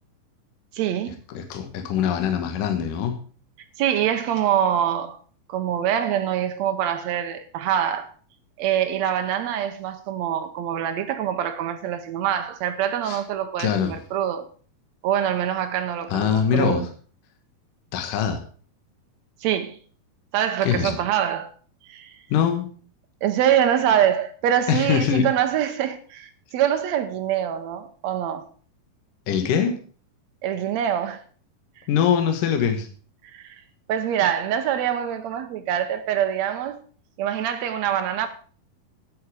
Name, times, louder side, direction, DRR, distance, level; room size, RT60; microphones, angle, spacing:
voice 1, 0.7-1.2 3.8-5.2 5.5-8.1 8.6-14.4 15.0-16.9 19.4-19.8 20.3-21.5 21.8-22.2 23.2-28.5 30.4-31.2 31.8-31.9 33.3-33.6 33.9-36.8 37.2-38.3, right 10 dB, 85° right, 1.5 m, -24 dB
voice 2, 1.3-3.2 13.0-13.2 13.6-14.0 16.1-16.8 17.9-18.4 20.6-21.0 22.3-22.7 24.7-25.3 29.3-29.7 31.9-32.9, left 8 dB, 65° left, 2.8 m, -23 dB
12.0 x 10.0 x 4.8 m
omnidirectional pair, 4.3 m